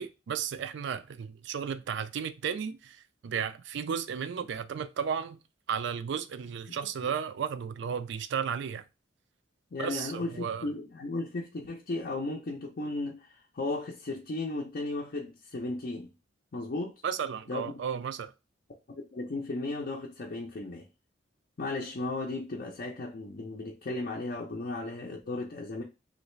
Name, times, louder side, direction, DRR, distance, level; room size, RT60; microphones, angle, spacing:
voice 1, 0.0-5.4 5.7-8.8 9.8-10.6 17.0-18.3, right 7 dB, 65° right, 0.4 m, -34 dB
voice 2, 9.7-16.1 16.5-17.0 17.5-17.8 18.9-20.9 21.6-25.8, left 2 dB, 50° left, 0.5 m, -35 dB
3.1 x 2.5 x 3.1 m
head